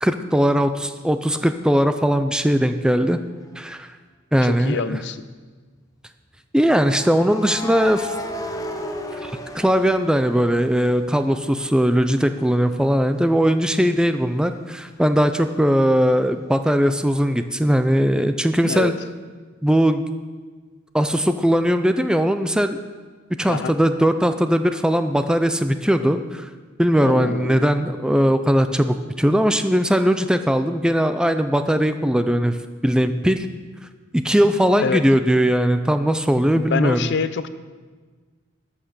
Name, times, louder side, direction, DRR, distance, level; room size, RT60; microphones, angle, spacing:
voice 1, 0.0-3.2 3.6-3.9 4.3-5.0 6.5-8.1 9.2-18.9 19.6-20.0 20.9-22.8 23.4-26.5 26.8-32.6 32.8-33.5 34.1-37.1, equal, 5° right, 9 dB, 0.4 m, -19 dB
sound 1, 3.5-3.7 6.8-10.7 11.1-14.6, left 1 dB, 15° left, 0.8 m, -35 dB
voice 2, 4.4-5.2 18.6-18.9 23.5-23.7 27.0-27.7 34.8-35.0 36.6-37.5, left 5 dB, 55° left, 13 dB, 0.5 m, -26 dB
13.5 x 5.8 x 6.6 m, 1.5 s
head